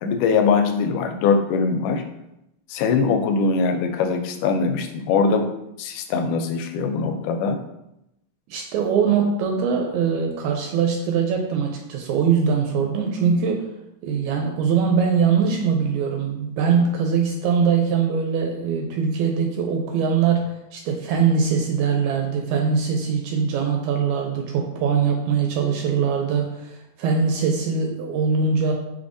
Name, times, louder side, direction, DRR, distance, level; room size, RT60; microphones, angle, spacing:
voice 1, 0.0-2.0 2.7-5.5 5.8-7.6, left 5 dB, 90° left, 6 dB, 2.1 m, -21 dB
voice 2, 8.5-13.6 14.0-28.7, right 6 dB, 80° right, 2 dB, 1.7 m, -22 dB
5.2 x 3.3 x 2.5 m, 0.86 s
omnidirectional pair, 3.6 m